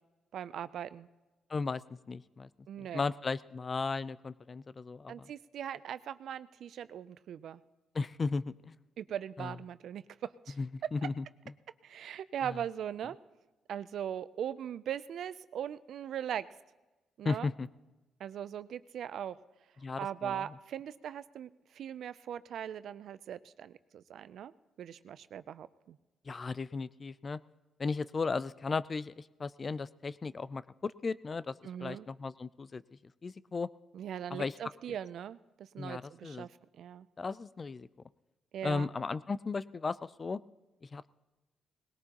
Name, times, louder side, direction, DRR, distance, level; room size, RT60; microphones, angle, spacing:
voice 1, 0.3-1.1 2.7-3.0 5.1-7.6 9.0-10.6 10.8-10.9 11.8-13.2 13.7-16.5 17.2-17.5 18.2-19.4 20.0-24.5 24.8-26.0 31.6-32.1 33.9-37.1 38.5-38.9, right 9 dB, 70° right, 15 dB, 0.4 m, -40 dB
voice 2, 1.5-1.8 2.1-2.5 2.8-5.3 7.9-8.7 9.4-9.5 10.6-11.2 12.4-12.6 17.2-17.7 19.8-20.5 26.3-27.4 27.8-31.6 31.8-32.8 33.2-33.7 34.3-34.5 35.8-36.5 37.2-37.9 38.6-40.4 40.8-41.1, left 4 dB, 35° left, 17 dB, 0.4 m, -35 dB
20.0 x 18.0 x 3.0 m, 1.1 s
cardioid pair, 90°, 0 cm